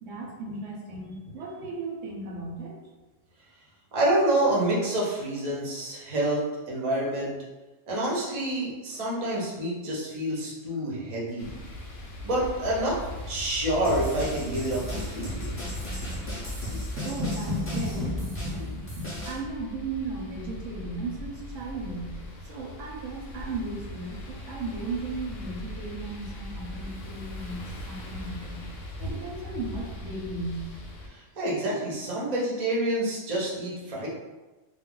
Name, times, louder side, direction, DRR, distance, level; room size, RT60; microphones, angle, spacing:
voice 1, 0.0-2.7 17.0-22.1 22.5-27.6 27.9-28.6 29.0-30.6, right 2 dB, 75° right, -1 dB, 0.9 m, -35 dB
voice 2, 3.9-7.3 7.9-11.6 12.2-13.0 13.3-15.5 16.7-16.9 31.1-34.1, right 1 dB, 40° right, -4 dB, 0.6 m, -28 dB
sound 1, 11.4-31.1, left 1 dB, 60° left, 0.8 m, -39 dB
sound 2, 13.8-19.4, equal, 15° left, 0.4 m, -37 dB
2.3 x 2.0 x 3.6 m, 1.2 s
omnidirectional pair, 1.3 m